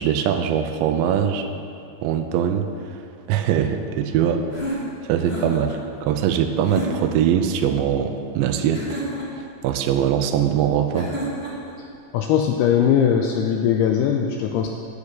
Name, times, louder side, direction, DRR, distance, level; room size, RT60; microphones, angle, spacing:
voice 1, 0.0-1.5 2.0-3.0 3.3-4.8 5.1-9.0 9.6-11.2, right 8 dB, 85° right, 6 dB, 2.9 m, -22 dB
sound 1, 4.5-5.8 6.6-7.2 8.7-9.5 10.9-11.7, right 1 dB, 25° left, 1.4 m, -31 dB
voice 2, 12.1-14.8, left 8 dB, 85° left, 3 dB, 2.4 m, -20 dB
12.0 x 8.4 x 6.6 m, 2.5 s
omnidirectional pair, 5.2 m